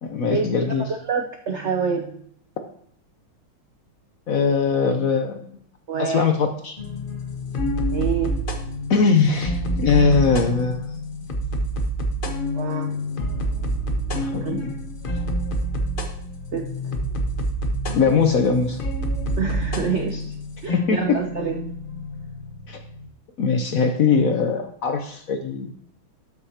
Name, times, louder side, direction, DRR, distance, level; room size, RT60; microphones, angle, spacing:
voice 1, 0.0-0.9 4.3-5.4 6.0-6.8 8.9-11.0 14.1-14.7 17.9-18.8 20.7-21.2 22.7-22.8 23.4-25.7, left 5 dB, 65° left, 6 dB, 0.8 m, -21 dB
voice 2, 1.1-2.2 5.9-6.2 7.9-8.4 12.5-12.9 14.4-14.6 16.5-16.7 19.4-20.3 20.6-21.7, right 6 dB, 90° right, 3 dB, 0.6 m, -26 dB
sound 1, 6.8-23.1, equal, 40° left, 0.8 m, -27 dB
12.5 x 6.7 x 2.8 m, 0.64 s
omnidirectional pair, 2.2 m